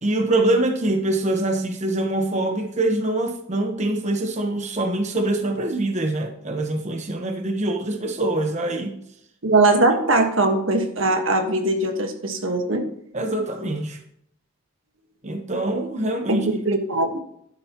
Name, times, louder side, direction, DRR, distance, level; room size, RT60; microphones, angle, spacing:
voice 1, 0.0-8.9 13.1-14.0 15.2-16.6, right 2 dB, 35° right, 4 dB, 1.1 m, -24 dB
voice 2, 9.4-12.8 16.3-17.2, right 2 dB, 80° right, 5 dB, 1.5 m, -20 dB
11.5 x 11.5 x 3.0 m, 0.72 s
head